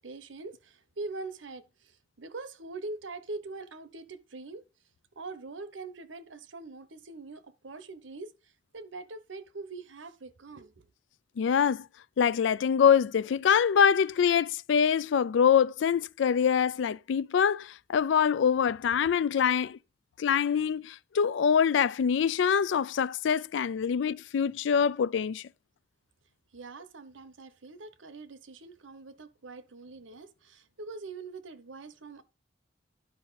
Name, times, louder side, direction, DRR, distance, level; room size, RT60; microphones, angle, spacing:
voice 1, 0.0-4.6 5.2-8.3 8.7-10.9 26.5-32.2, right 3 dB, 85° right, 1.0 m, -43 dB
voice 2, 11.4-11.9 12.2-19.8 20.2-25.5, left 7 dB, 70° left, 0.3 m, -25 dB
11.0 x 5.3 x 4.1 m
head